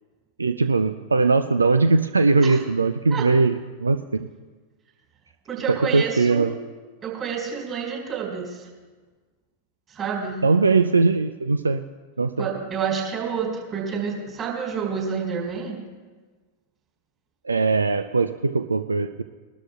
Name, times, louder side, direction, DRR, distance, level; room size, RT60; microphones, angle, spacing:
voice 1, 0.4-4.3 5.7-6.5 10.4-11.8 12.2-12.5 17.4-19.2, right 3 dB, 75° right, 10 dB, 0.4 m, -20 dB
voice 2, 5.5-6.6 7.0-8.7 9.9-10.4 12.4-15.8, right 6 dB, 25° right, -2 dB, 4.7 m, -29 dB
21.5 x 12.5 x 2.4 m, 1.4 s
figure-of-eight pair, 90°, 0 cm